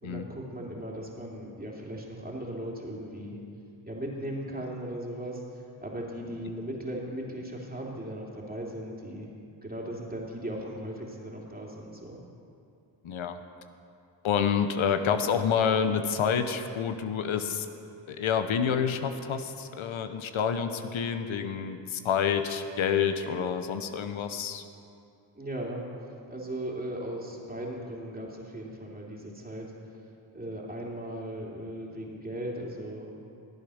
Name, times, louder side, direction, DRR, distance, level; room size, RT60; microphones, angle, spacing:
voice 1, 0.0-3.4 3.9-5.4 5.8-9.3 9.6-12.2 25.3-25.8 26.3-29.7 30.3-33.1, right 1 dB, 20° right, -2 dB, 2.9 m, -37 dB
voice 2, 13.0-13.4 14.2-17.7 18.1-24.6, left 7 dB, 80° left, 8 dB, 0.8 m, -28 dB
14.0 x 8.6 x 6.4 m, 2.5 s
cardioid pair, 55°, 47 cm